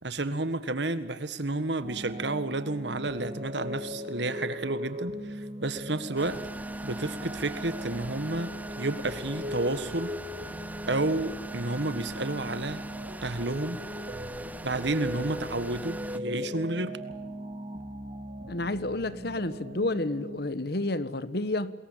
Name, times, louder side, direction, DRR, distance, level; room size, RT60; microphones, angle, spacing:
voice 1, 0.0-6.4 6.8-10.2 10.9-12.8 13.2-13.8 14.6-17.0, right 2 dB, 70° right, 1.8 m, -31 dB
sound 1, 1.8-20.4, equal, 35° right, 3.3 m, -39 dB
sound 2, 6.2-16.2, right 2 dB, 10° right, 0.9 m, -42 dB
voice 2, 18.5-21.7, left 2 dB, 60° left, 1.4 m, -30 dB
27.5 x 22.0 x 8.8 m
head